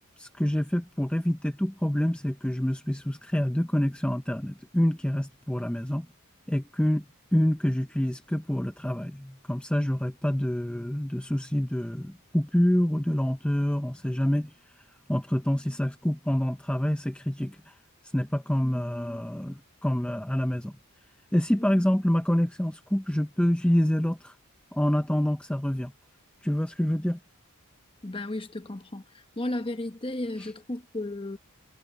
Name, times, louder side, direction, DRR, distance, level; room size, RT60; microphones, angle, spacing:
voice 1, 0.2-6.1 6.5-7.0 7.3-14.8 15.1-17.7 18.1-20.8 21.3-24.4 24.7-25.9 26.4-27.2 30.4-30.5, equal, 5° left, 0.6 m, -27 dB
voice 2, 28.0-31.4, left 1 dB, 25° left, 1.1 m, -34 dB
head